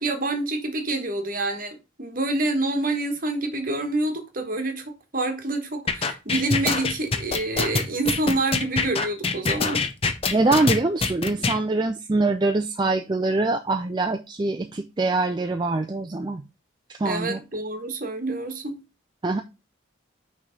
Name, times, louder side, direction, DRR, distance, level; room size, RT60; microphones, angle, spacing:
voice 1, 0.0-9.8 17.0-18.8, right 2 dB, 45° right, 1.3 m, -27 dB
sound 1, 5.9-11.6, left 4 dB, 30° left, 0.6 m, -24 dB
voice 2, 10.3-16.4 17.0-17.4 19.2-19.4, right 2 dB, 20° right, 0.4 m, -24 dB
6.1 x 3.3 x 5.7 m
head